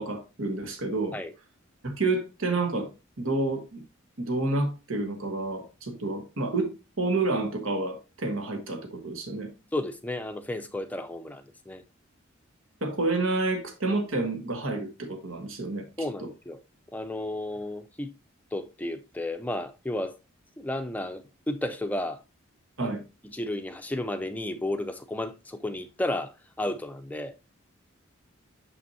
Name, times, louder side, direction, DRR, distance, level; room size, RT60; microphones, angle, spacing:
voice 1, 0.0-1.2 1.8-2.9 3.2-3.8 4.2-9.5 12.8-15.8 16.2-16.3 22.8-23.0, right 2 dB, 85° right, 1.3 m, -29 dB
voice 2, 9.7-11.8 16.0-16.6 16.9-18.1 18.5-20.2 20.6-22.2 22.8-23.0 23.2-27.3, left 1 dB, 5° left, 0.4 m, -33 dB
6.8 x 5.9 x 2.7 m
head